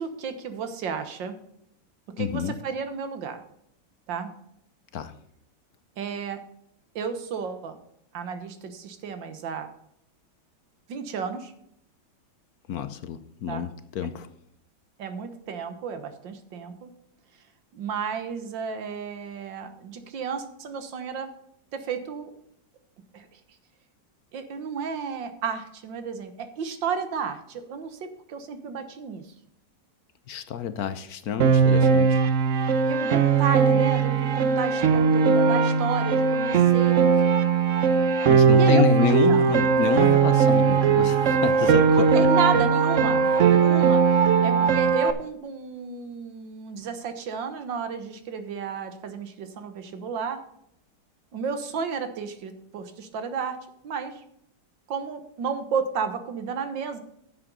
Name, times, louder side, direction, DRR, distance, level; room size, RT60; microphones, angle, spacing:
voice 1, 0.0-1.4 2.2-3.4 4.1-4.3 6.0-6.4 7.0-7.8 8.1-9.7 10.9-11.5 13.5-13.6 15.0-16.9 17.7-21.3 21.7-22.3 23.1-23.3 24.3-29.2 32.7-37.3 38.5-38.9 39.3-39.4 42.0-50.4 51.3-53.6 53.8-54.2 54.9-57.0, right 6 dB, 90° right, 2.0 m, -32 dB
voice 2, 2.2-2.6 4.9-5.2 12.7-14.3 30.3-32.2 38.3-42.3, left 8 dB, 65° left, 1.1 m, -28 dB
Piano, 31.4-45.1, right 6 dB, 55° right, 1.0 m, -19 dB
9.7 x 7.6 x 5.3 m
omnidirectional pair, 1.9 m